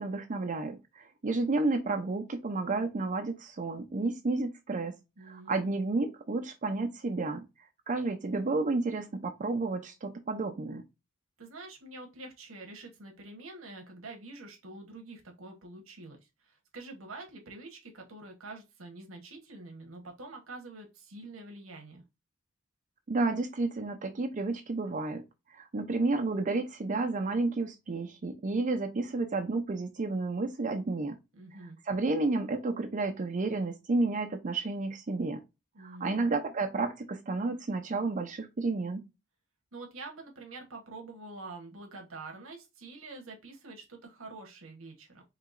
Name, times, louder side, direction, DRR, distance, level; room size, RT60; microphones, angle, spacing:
voice 1, 0.0-4.9 5.3-7.5 7.9-10.8 23.1-25.2 25.5-31.2 31.9-35.4 35.8-39.0, right 3 dB, 40° right, 0.5 m, -31 dB
voice 2, 5.2-5.7 11.4-22.0 31.3-31.8 35.7-36.3 39.7-45.2, right 2 dB, 80° right, 1.2 m, -46 dB
4.7 x 3.0 x 2.4 m
head